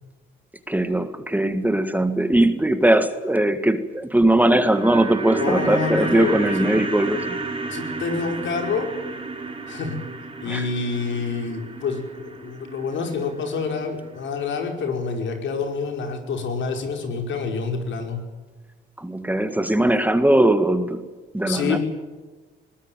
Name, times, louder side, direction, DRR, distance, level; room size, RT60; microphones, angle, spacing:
voice 1, 0.7-7.4 10.4-10.7 19.0-21.1 21.3-21.8, right 1 dB, 10° right, 9 dB, 1.8 m, -20 dB
sound 1, 4.4-14.6 14.8-14.9, right 3 dB, 25° right, 5.3 m, -32 dB
voice 2, 5.4-6.8 7.7-8.9 9.7-10.0 10.4-18.2 21.5-21.8, left 4 dB, 70° left, 4 dB, 5.1 m, -27 dB
21.0 x 19.5 x 9.2 m, 1.3 s
cardioid pair, 90°, 20 cm